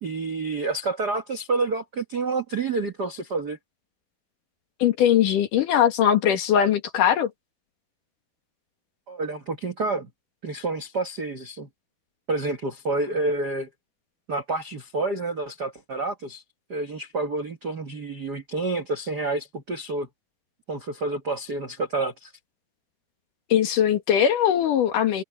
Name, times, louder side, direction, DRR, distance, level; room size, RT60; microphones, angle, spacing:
voice 1, 0.0-3.6 9.1-10.1 10.4-11.7 12.3-13.7 14.3-16.4 16.7-20.1 20.7-22.3, right 3 dB, 70° right, 0.9 m, -28 dB
voice 2, 4.8-7.3 23.5-25.2, left 9 dB, 60° left, 2.9 m, -20 dB
omnidirectional pair, 4.5 m